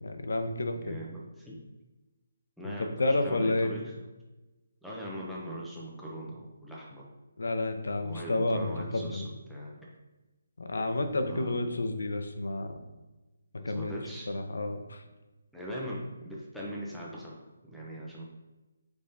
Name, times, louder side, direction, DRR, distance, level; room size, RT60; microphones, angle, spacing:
voice 1, 0.0-1.0 2.6-2.7 3.0-3.7 7.4-9.2 10.6-12.8 13.6-13.9 14.3-15.0, left 2 dB, 80° left, 7 dB, 0.6 m, -30 dB
voice 2, 0.7-1.6 2.6-3.9 4.8-7.1 8.0-9.9 11.3-11.6 13.6-14.3 15.5-18.2, equal, ahead, -6 dB, 0.6 m, -40 dB
5.2 x 3.4 x 2.7 m, 1.1 s
hypercardioid pair, 170°, 0 cm